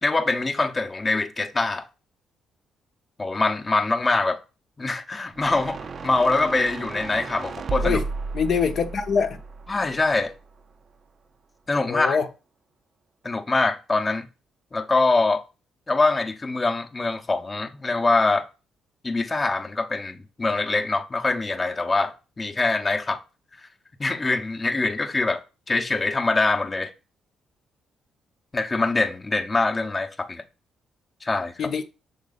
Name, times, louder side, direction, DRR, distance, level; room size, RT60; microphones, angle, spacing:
voice 1, 0.0-1.8 3.2-4.4 4.8-8.0 9.7-10.3 11.7-12.2 13.2-14.3 14.7-15.4 15.9-18.4 19.0-23.2 24.0-25.4 25.7-26.9 28.5-30.4 31.2-31.7, left 3 dB, 25° left, 0.8 m, -24 dB
sound 1, 5.4-10.6, right 4 dB, 45° right, 0.6 m, -34 dB
voice 2, 8.3-9.4 11.9-12.3 31.6-31.8, left 6 dB, 60° left, 0.7 m, -24 dB
6.3 x 3.9 x 4.0 m
cardioid pair, 90°, 0 cm